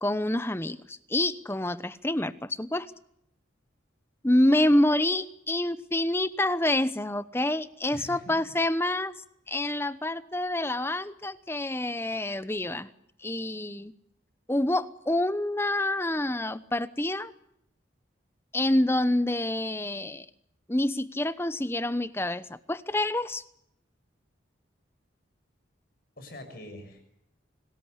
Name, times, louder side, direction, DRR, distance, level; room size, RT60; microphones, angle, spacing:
voice 1, 0.0-2.9 4.2-9.1 9.5-12.9 13.2-13.9 14.5-17.3 18.5-20.3 20.7-23.4, left 1 dB, 10° left, 15 dB, 1.0 m, -27 dB
voice 2, 7.9-8.5 26.2-27.0, left 1 dB, 50° left, 7 dB, 6.4 m, -44 dB
29.0 x 19.5 x 8.2 m, 0.77 s
head